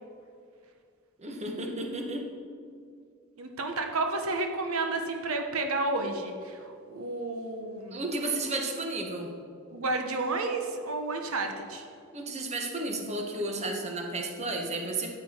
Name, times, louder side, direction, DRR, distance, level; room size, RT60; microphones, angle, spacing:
voice 1, 1.2-2.3 7.9-9.3 12.1-15.1, right 2 dB, 30° right, 2 dB, 1.3 m, -33 dB
voice 2, 3.4-8.0 9.7-11.8, right 2 dB, 85° right, 4 dB, 1.1 m, -31 dB
13.0 x 9.3 x 4.4 m, 2.4 s
head